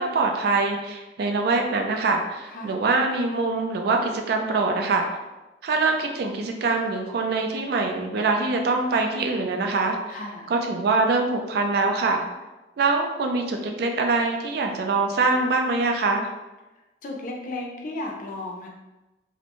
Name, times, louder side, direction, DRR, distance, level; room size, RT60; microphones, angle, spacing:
voice 1, 0.0-5.1 5.6-10.2 10.5-12.2 12.8-16.3, right 3 dB, 60° right, 3 dB, 0.3 m, -24 dB
voice 2, 2.5-2.8 10.1-10.5 17.0-18.7, left 2 dB, 50° left, 0 dB, 0.5 m, -34 dB
2.5 x 2.1 x 2.9 m, 1.1 s
head